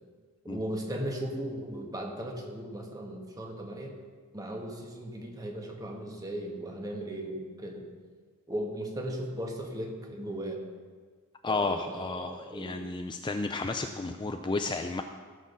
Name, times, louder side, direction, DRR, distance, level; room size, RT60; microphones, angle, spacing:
voice 1, 0.4-4.0 4.3-7.8 8.5-10.6 11.5-12.9, right 1 dB, 15° right, 1 dB, 1.7 m, -37 dB
voice 2, 11.4-15.0, left 3 dB, 20° left, 6 dB, 0.4 m, -32 dB
16.0 x 6.2 x 7.0 m, 1.5 s
head